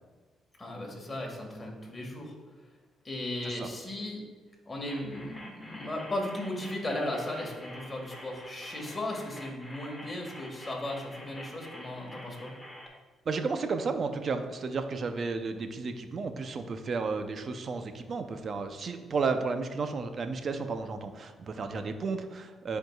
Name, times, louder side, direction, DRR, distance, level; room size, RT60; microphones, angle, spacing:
voice 1, 0.6-2.3 3.0-4.2 4.7-12.5, left 1 dB, 20° left, -1 dB, 1.7 m, -36 dB
sound 1, 4.9-12.9, equal, 5° left, 1.1 m, -48 dB
voice 2, 13.3-22.8, right 4 dB, 45° right, 8 dB, 0.6 m, -33 dB
10.5 x 4.6 x 2.3 m, 1.3 s
cardioid pair, 90°, 0 cm